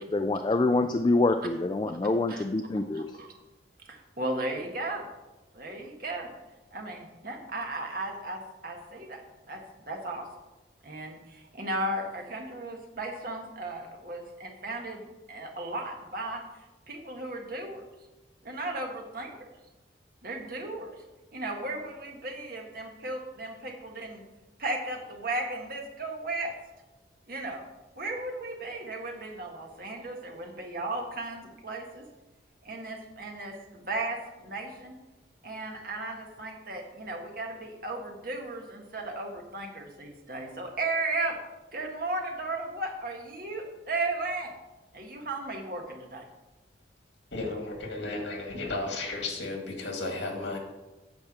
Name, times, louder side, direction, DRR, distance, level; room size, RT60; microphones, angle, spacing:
voice 1, 0.0-3.1, left 2 dB, 25° left, 7 dB, 0.3 m, -26 dB
voice 2, 2.9-3.3 3.9-5.1 5.5-6.3 6.7-9.2 9.5-9.6 9.9-10.2 10.8-16.4 16.9-17.8 18.4-19.3 20.2-20.9 21.3-24.2 24.6-26.5 27.3-27.6 27.9-32.0 32.6-34.9 35.4-41.4 41.7-44.5 44.9-46.2, right 2 dB, 50° right, 1 dB, 1.5 m, -35 dB
voice 3, 47.3-50.6, left 2 dB, 85° left, 1 dB, 2.2 m, -34 dB
9.0 x 4.5 x 7.4 m, 1.1 s
head